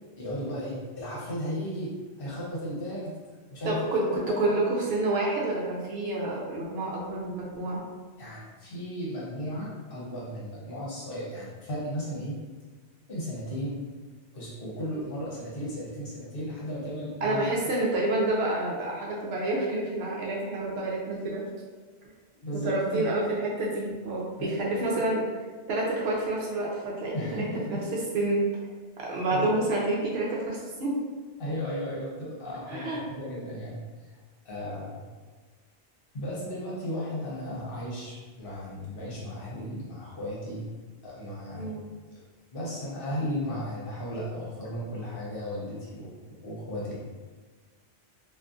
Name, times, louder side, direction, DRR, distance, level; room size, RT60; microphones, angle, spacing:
voice 1, 0.2-3.1 3.5-4.5 8.2-12.3 13.1-13.8 14.3-17.6 22.4-23.0 24.4-24.8 27.1-27.8 29.3-29.7 31.4-33.8 34.4-35.0 36.1-40.6 41.0-41.7 42.5-46.1 46.4-47.0, equal, 60° left, -6 dB, 0.9 m, -35 dB
voice 2, 3.6-7.8 17.2-21.4 22.5-25.2 25.7-27.8 28.1-28.5 29.0-31.0 32.7-33.0 41.6-41.9, right 2 dB, 70° right, -3 dB, 0.8 m, -28 dB
2.5 x 2.4 x 2.4 m, 1.4 s
omnidirectional pair, 1.1 m